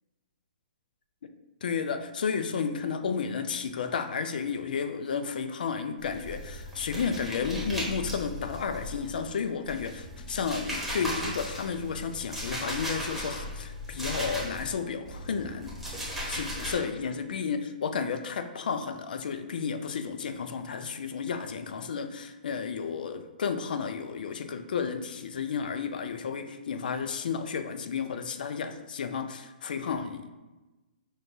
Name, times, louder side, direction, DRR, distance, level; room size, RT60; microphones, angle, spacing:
voice 1, 1.6-15.7 16.3-30.3, left 6 dB, 70° left, 9 dB, 0.4 m, -32 dB
sound 1, 6.0-9.3 9.6-14.7 15.1-16.8, equal, ahead, 1.0 m, -37 dB
6.2 x 2.3 x 2.6 m, 1.1 s
hypercardioid pair, 145°, 5 cm